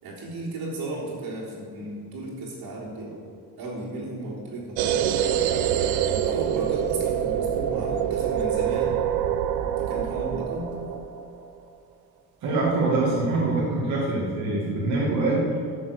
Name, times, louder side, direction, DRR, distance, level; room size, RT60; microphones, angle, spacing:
voice 1, 0.0-3.2 3.6-5.2 6.0-9.0 9.8-10.7, right 2 dB, 70° right, -4 dB, 3.6 m, -34 dB
sound 1, 4.8-11.4, right 9 dB, 85° right, 0.8 m, -25 dB
voice 2, 12.4-15.5, right 2 dB, 50° right, -6 dB, 2.5 m, -24 dB
13.5 x 7.1 x 6.8 m, 2.3 s
cardioid pair, 165°, 37 cm